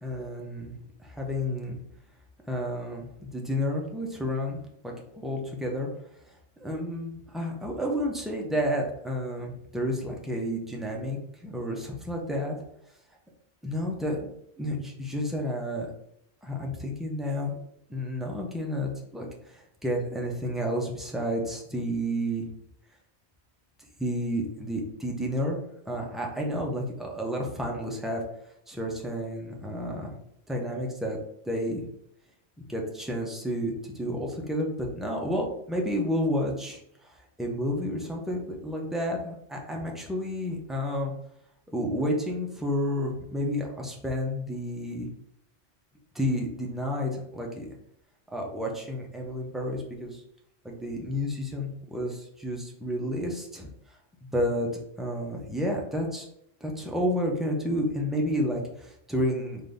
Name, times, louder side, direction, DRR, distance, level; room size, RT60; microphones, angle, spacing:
voice 1, 0.0-0.7 1.0-1.8 2.5-5.9 6.6-12.6 13.6-14.3 14.6-15.9 16.4-17.5 17.9-22.4 24.0-25.6 25.9-28.2 28.7-30.1 30.5-31.2 31.4-31.8 32.6-41.1 41.7-45.1 46.1-47.8 48.3-50.2 50.6-53.7 54.2-54.7 55.0-56.3 56.6-59.6, equal, ahead, -1 dB, 0.4 m, -31 dB
3.8 x 2.6 x 3.3 m, 0.76 s
omnidirectional pair, 1.1 m